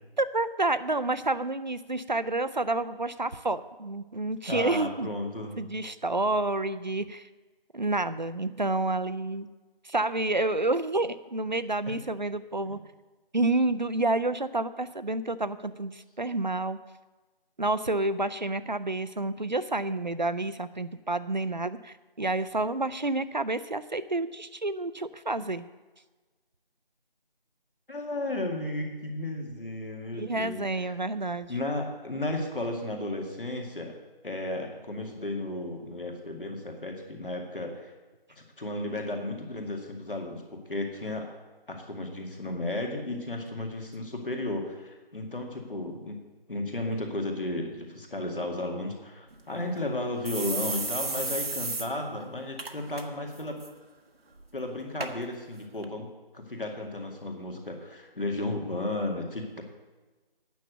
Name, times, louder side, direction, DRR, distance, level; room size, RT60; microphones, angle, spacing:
voice 1, 0.2-5.1 5.6-7.3 7.7-9.5 9.8-12.8 13.3-16.8 17.6-25.7 30.1-31.5, right 2 dB, 50° right, 14 dB, 0.5 m, -29 dB
voice 2, 4.5-5.7 12.6-12.7 27.9-31.0 31.5-34.0 34.2-37.9 38.3-41.3 41.7-46.2 46.5-53.6 54.5-56.1 56.3-59.6, left 2 dB, 65° left, 2 dB, 2.1 m, -34 dB
sound 1, 49.3-49.4 49.7-49.8 50.2-51.9 52.2-52.3 52.6-53.0 53.4-53.7 54.4-54.5 55.0-55.1 55.8-55.9, right 3 dB, 90° right, 1.2 m, -32 dB
9.3 x 6.6 x 7.9 m, 1.2 s
figure-of-eight pair, 180°, 29 cm